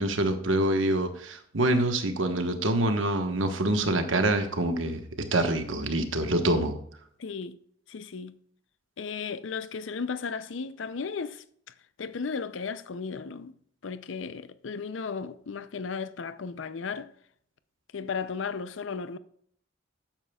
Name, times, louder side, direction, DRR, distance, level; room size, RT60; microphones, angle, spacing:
voice 1, 0.0-5.0 5.3-6.7, right 1 dB, 85° right, 1.3 m, -26 dB
voice 2, 7.2-7.6 7.9-8.3 9.0-11.4 12.0-13.5 13.8-17.1 17.9-19.2, left 5 dB, 70° left, 0.6 m, -35 dB
12.0 x 9.0 x 2.4 m
head